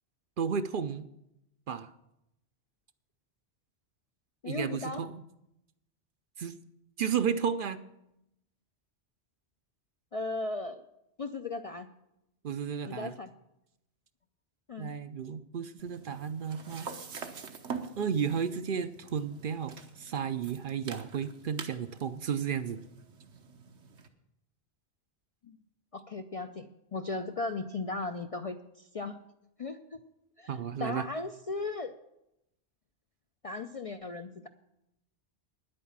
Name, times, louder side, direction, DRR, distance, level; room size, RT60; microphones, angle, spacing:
voice 1, 0.4-1.1 1.7-1.9 4.4-5.2 6.4-6.6 7.0-7.8 12.4-13.1 14.8-16.9 18.0-22.8 30.5-31.1, right 7 dB, 60° right, 11 dB, 0.7 m, -33 dB
voice 2, 4.4-5.1 10.1-10.8 11.2-11.9 12.9-13.3 14.7-14.9 25.4-25.6 25.9-29.2 29.6-30.0 30.4-31.9 33.4-34.5, left 3 dB, 45° left, 7 dB, 0.4 m, -37 dB
sound 1, 15.8-24.1, right 6 dB, 80° right, 1.3 m, -45 dB
10.0 x 8.7 x 7.2 m, 0.83 s
omnidirectional pair, 1.1 m